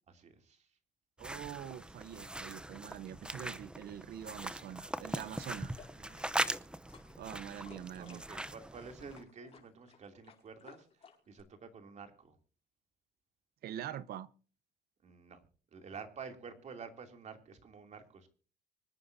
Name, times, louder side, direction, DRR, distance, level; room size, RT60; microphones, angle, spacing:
voice 1, 0.2-0.7 5.2-5.3 6.0-6.3 7.7-10.9 11.3-12.4 15.0-15.4 15.7-18.3, right 5 dB, 45° right, 2.9 m, -50 dB
sound 1, 1.2-9.2, right 1 dB, 5° right, 0.7 m, -41 dB
voice 2, 1.2-5.7 7.2-8.4 13.6-14.3, right 10 dB, 65° right, 0.9 m, -44 dB
sound 2, 5.4-11.4, left 6 dB, 40° left, 5.0 m, -59 dB
25.0 x 9.6 x 2.7 m
cardioid pair, 110°, 17 cm